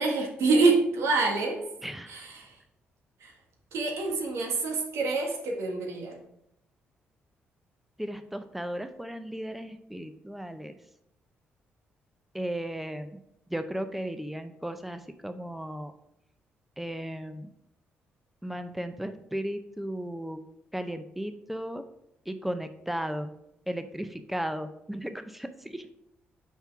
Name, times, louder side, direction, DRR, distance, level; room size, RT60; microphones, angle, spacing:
voice 1, 0.0-1.6 2.1-2.5 3.2-3.3 3.7-6.2, right 3 dB, 75° right, 2 dB, 1.5 m, -26 dB
voice 2, 1.8-2.3 8.0-10.7 12.3-13.2 13.5-15.9 16.8-17.5 18.4-20.4 20.7-21.8 22.3-23.3 23.7-25.9, right 1 dB, 5° right, 9 dB, 0.6 m, -35 dB
5.6 x 4.5 x 5.8 m, 0.79 s
supercardioid pair, 60°, 5 cm